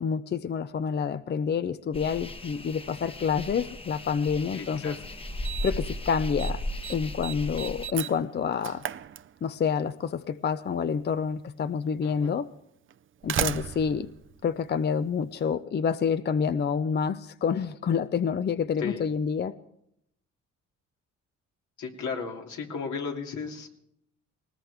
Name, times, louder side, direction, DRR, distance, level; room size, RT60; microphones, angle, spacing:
voice 1, 0.0-5.0 5.6-6.6 6.9-8.8 9.4-12.5 13.2-14.1 14.4-19.6, left 6 dB, 35° left, 13 dB, 0.5 m, -28 dB
sound 1, 1.9-7.9, left 1 dB, 20° left, 1.1 m, -36 dB
voice 2, 4.5-5.0 12.0-12.3 18.8-19.0 21.8-23.7, left 5 dB, 75° left, 1 dB, 2.8 m, -35 dB
Slam, 4.6-4.7 5.4-5.9 6.2-6.5 6.8-9.8 10.9-11.0 11.9-12.0 12.9-15.3, right 9 dB, 40° right, 0.6 m, -35 dB
19.5 x 19.0 x 3.5 m, 0.75 s
cardioid pair, 90°, 30 cm